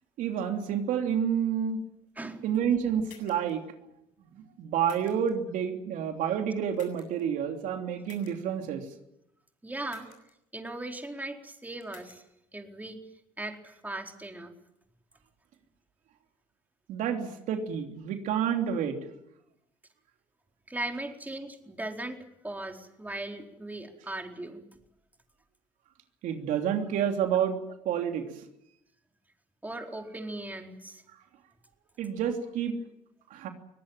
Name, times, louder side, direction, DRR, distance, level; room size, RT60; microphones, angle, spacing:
voice 1, 0.2-1.8 2.4-3.6 4.3-8.9 16.9-19.0 26.2-28.4 32.0-32.7 33.3-33.5, right 8 dB, 70° right, 4 dB, 3.1 m, -29 dB
sound 1, 3.0-3.5 4.8-5.3 6.7-7.2 8.0-8.3 9.9-10.3 11.8-12.2, left 9 dB, 75° left, 7.8 m, -54 dB
voice 2, 9.6-10.1 10.5-12.2 12.5-13.0 13.4-14.5 20.7-24.6 27.3-27.4 29.6-31.0, right 2 dB, 10° right, 3 dB, 4.3 m, -38 dB
23.5 x 19.0 x 9.0 m, 0.82 s
supercardioid pair, 70°, 14 cm